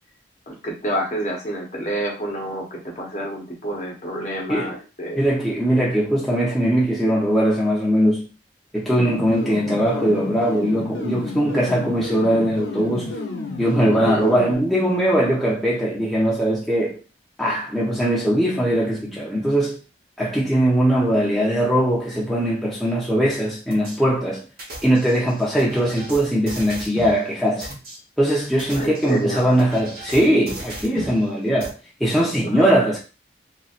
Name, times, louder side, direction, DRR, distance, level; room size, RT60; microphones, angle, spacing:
voice 1, 0.5-5.2 13.9-14.3 28.7-29.6 32.5-32.7, right 1 dB, 40° left, 0.9 m, -28 dB
voice 2, 5.2-8.2 8.7-13.2 13.6-17.0 17.4-19.8 20.2-24.4 24.8-27.7 28.2-31.7 32.0-33.0, equal, ahead, 0.5 m, -20 dB
sound 1, 8.9-14.5, left 2 dB, 90° left, 0.6 m, -30 dB
sound 2, 23.7-24.0 24.6-27.2 27.6-28.0 28.5-31.2 31.6-31.7, right 1 dB, 55° right, 1.0 m, -37 dB
3.0 x 2.8 x 2.4 m
head